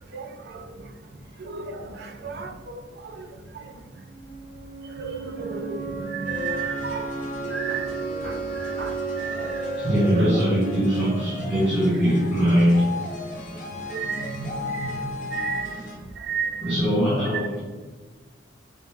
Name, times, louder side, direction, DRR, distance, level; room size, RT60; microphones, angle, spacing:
voice 1, 0.1-0.7 1.4-2.5 3.0-3.3 3.6-3.7 5.0-7.1 7.5-9.6 10.1-10.4 13.9-14.9 15.3-15.8 16.2-16.8, right 5 dB, 55° right, 4 dB, 0.4 m, -33 dB
sound 1, 3.9-11.9, right 4 dB, 35° right, 0.8 m, -35 dB
sound 2, 6.2-16.0, left 1 dB, 40° left, 0.5 m, -34 dB
voice 2, 9.8-12.9 16.6-17.6, equal, 5° right, -9 dB, 0.9 m, -21 dB
5.0 x 2.1 x 3.2 m, 1.3 s
head